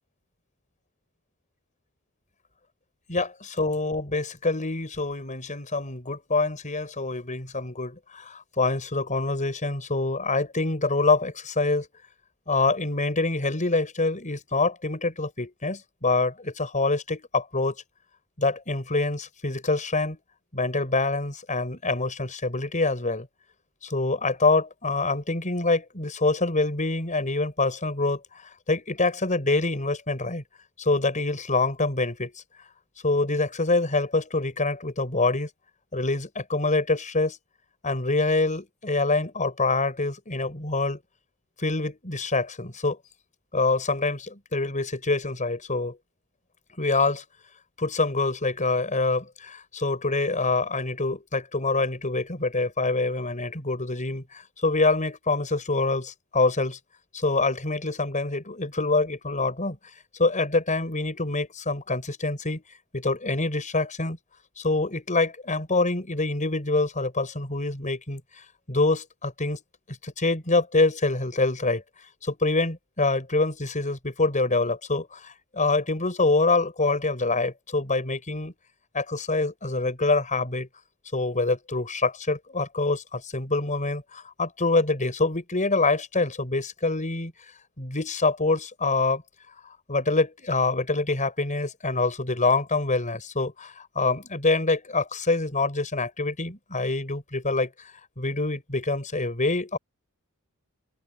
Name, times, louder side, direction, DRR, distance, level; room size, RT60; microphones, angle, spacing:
voice 1, 3.1-11.9 12.5-17.7 18.4-20.2 20.5-23.3 23.8-30.4 30.8-32.3 33.0-35.5 35.9-37.4 37.8-41.0 41.6-43.0 43.5-46.0 46.8-47.2 47.8-56.8 57.1-59.8 60.2-62.6 62.9-64.2 64.6-68.2 68.7-69.6 69.9-71.8 72.2-78.5 78.9-80.7 81.1-87.3 87.8-89.2 89.6-97.7 98.2-99.8, left 3 dB, 35° left, 5.9 m, -25 dB
open air
head